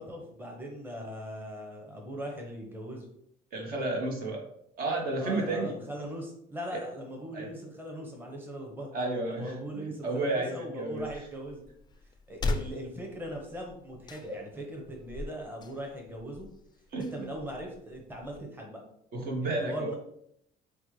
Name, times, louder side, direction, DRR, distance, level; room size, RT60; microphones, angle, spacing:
voice 1, 0.0-3.1 5.2-8.9 9.3-11.7 12.3-16.5 17.0-18.8 19.4-20.0, equal, 10° right, 0 dB, 0.9 m, -40 dB
voice 2, 3.5-4.4 4.8-5.7 6.7-6.8 7.3-7.5 8.9-11.0 16.9-17.3 19.1-20.0, right 2 dB, 60° right, 1 dB, 1.1 m, -32 dB
sound 1, 11.0-18.4, left 3 dB, 25° left, 0.4 m, -40 dB
5.1 x 2.2 x 3.1 m, 0.73 s
cardioid pair, 110°, 17 cm